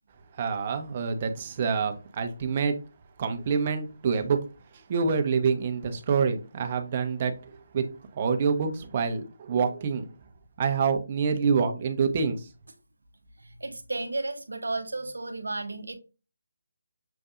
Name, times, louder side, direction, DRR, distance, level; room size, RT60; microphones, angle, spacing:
voice 1, 0.4-2.7 3.2-4.4 4.9-7.3 7.7-7.8 8.1-10.1 10.6-12.4, right 5 dB, 35° right, 0.7 m, -26 dB
voice 2, 13.4-16.0, right 2 dB, 80° right, 0.8 m, -33 dB
6.7 x 2.5 x 2.4 m
figure-of-eight pair, 155°, 0 cm